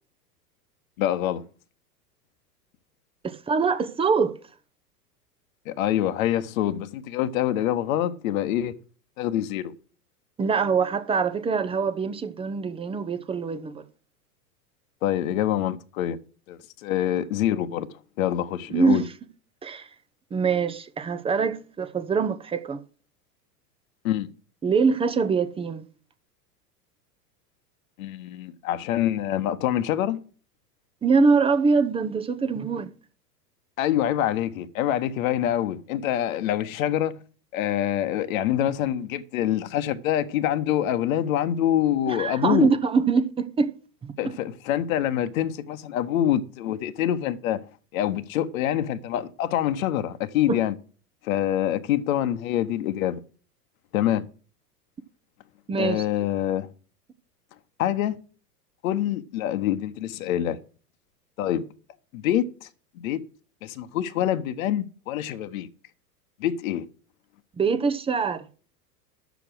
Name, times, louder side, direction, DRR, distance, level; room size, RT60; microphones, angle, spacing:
voice 1, 1.0-1.4 5.7-8.8 9.2-9.7 15.0-16.2 16.5-17.9 18.2-19.0 24.0-24.3 28.0-30.2 33.8-37.2 37.5-42.7 44.2-47.6 47.9-50.7 51.2-53.2 53.9-54.3 55.8-56.7 57.8-58.2 58.8-60.6 61.4-61.6 62.1-62.7 63.0-63.2 63.6-65.7 66.4-66.9, left 11 dB, 55° left, 1.1 m, -25 dB
voice 2, 3.2-4.4 10.4-13.8 18.7-19.0 19.6-19.9 20.3-22.8 24.6-25.9 31.0-32.9 42.1-43.7 50.5-50.6 55.7-56.0 67.6-68.4, right 5 dB, 10° right, 0.7 m, -23 dB
10.0 x 7.1 x 6.2 m
hypercardioid pair, 100°, 48 cm